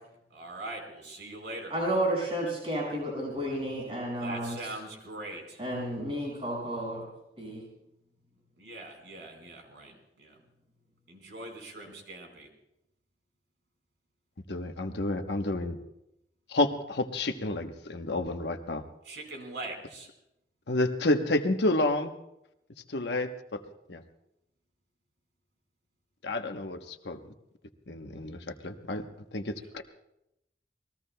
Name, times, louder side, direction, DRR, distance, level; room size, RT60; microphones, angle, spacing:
voice 1, 0.3-1.7 4.2-5.6 8.6-10.4 11.1-12.5 19.0-20.1, right 2 dB, 90° right, 3 dB, 4.5 m, -42 dB
voice 2, 1.7-4.6 5.6-7.0 7.4-7.6, right 1 dB, 30° right, -3 dB, 5.9 m, -31 dB
voice 3, 14.5-15.8 16.5-18.8 20.7-22.1 22.9-23.6 23.9-24.0 26.2-27.2 27.9-29.0 29.3-29.8, left 2 dB, 80° left, 6 dB, 1.1 m, -30 dB
28.0 x 20.5 x 2.3 m, 0.86 s
head